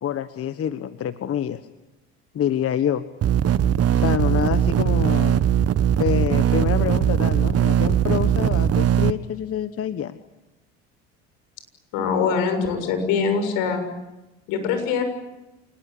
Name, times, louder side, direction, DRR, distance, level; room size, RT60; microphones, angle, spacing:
voice 1, 0.0-1.6 2.3-3.0 4.0-5.5 6.0-10.2, left 9 dB, 45° left, 11 dB, 1.3 m, -26 dB
sound 1, 3.2-9.1, right 10 dB, 45° right, 1.4 m, -20 dB
voice 2, 11.9-13.9 14.5-15.0, left 6 dB, 70° left, 7 dB, 7.1 m, -23 dB
28.0 x 20.5 x 9.9 m, 1.0 s
hypercardioid pair, 70°, 34 cm